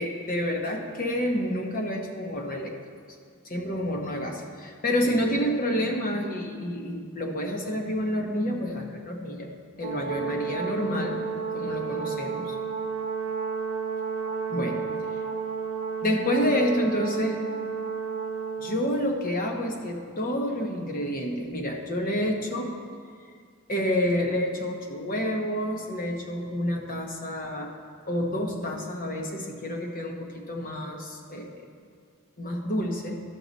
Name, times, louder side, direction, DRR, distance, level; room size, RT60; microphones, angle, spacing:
voice 1, 0.0-2.7 3.4-9.5 9.8-11.2 11.5-12.6 14.5-14.8 16.0-17.4 18.6-22.8 23.7-27.7 28.1-31.7 32.4-33.1, equal, 40° left, 2 dB, 1.0 m, -29 dB
Brass instrument, 9.8-18.8, right 5 dB, 35° right, 1.0 m, -31 dB
13.5 x 5.8 x 4.0 m, 2.1 s
head